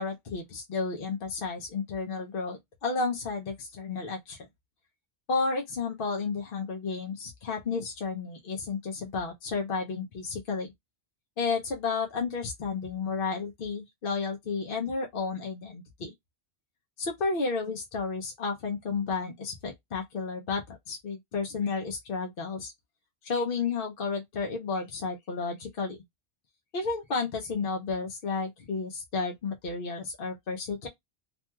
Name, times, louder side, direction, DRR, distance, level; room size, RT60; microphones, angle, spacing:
voice 1, 0.0-4.5 5.3-10.7 11.4-16.1 17.0-22.7 23.2-26.0 26.7-30.9, left 4 dB, 60° left, 0.8 m, -32 dB
2.9 x 2.6 x 2.2 m
omnidirectional pair, 1.1 m